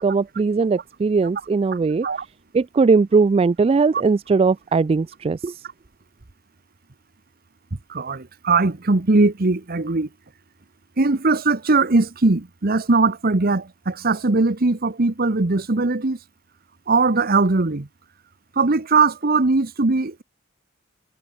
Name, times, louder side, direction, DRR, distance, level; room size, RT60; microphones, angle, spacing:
voice 1, 0.0-2.1 2.5-5.6, right 4 dB, 30° right, 0.3 m, -19 dB
voice 2, 7.9-10.1 11.0-16.2 16.9-17.9 18.6-20.2, right 3 dB, 50° right, 1.1 m, -20 dB
head